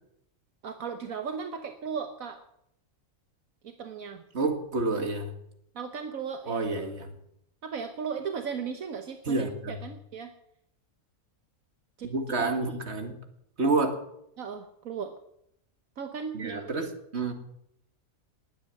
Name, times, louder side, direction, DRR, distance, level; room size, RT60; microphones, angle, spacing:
voice 1, 0.6-2.4 3.6-4.2 5.7-6.7 7.6-10.3 12.0-12.8 14.4-15.1 16.0-16.7, right 6 dB, 75° right, 6 dB, 1.5 m, -36 dB
voice 2, 4.3-5.3 6.5-7.1 9.3-9.8 12.0-13.1 13.6-14.0 16.3-17.3, right 3 dB, 50° right, 5 dB, 2.3 m, -29 dB
19.5 x 9.1 x 7.7 m, 0.76 s
omnidirectional pair, 1.5 m